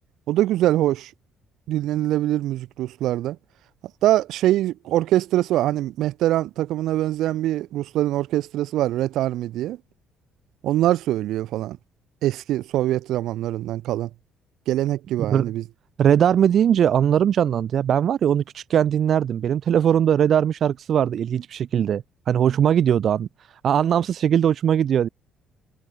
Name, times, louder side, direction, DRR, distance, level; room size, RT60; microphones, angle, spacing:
voice 1, 0.3-1.1 1.7-3.4 4.0-9.8 10.6-11.8 12.2-14.1 14.7-15.6, right 14 dB, 70° right, 2.8 m, -23 dB
voice 2, 16.0-23.3 23.6-25.1, right 9 dB, 45° right, 1.0 m, -20 dB
cardioid pair, 160°, 0 cm